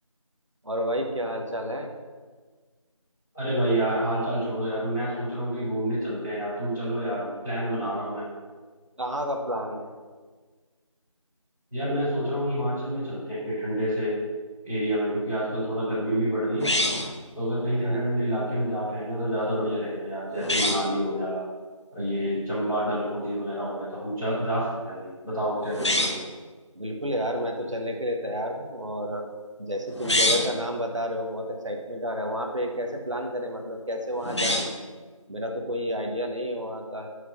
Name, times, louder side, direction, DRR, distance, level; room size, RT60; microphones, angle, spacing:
voice 1, 0.6-1.9 9.0-9.9 17.7-18.0 26.7-29.2 29.6-34.7 35.3-37.1, equal, 65° right, 2 dB, 1.3 m, -30 dB
voice 2, 3.3-8.2 11.7-14.2 14.6-16.7 17.3-21.4 21.9-26.1, equal, 5° right, -24 dB, 2.5 m, -28 dB
sound 1, 16.6-17.2 20.4-20.9 25.7-26.3 29.9-30.6 34.2-34.9, left 1 dB, 55° left, 0.8 m, -25 dB
6.5 x 4.7 x 5.7 m, 1.4 s
figure-of-eight pair, 175°, 17 cm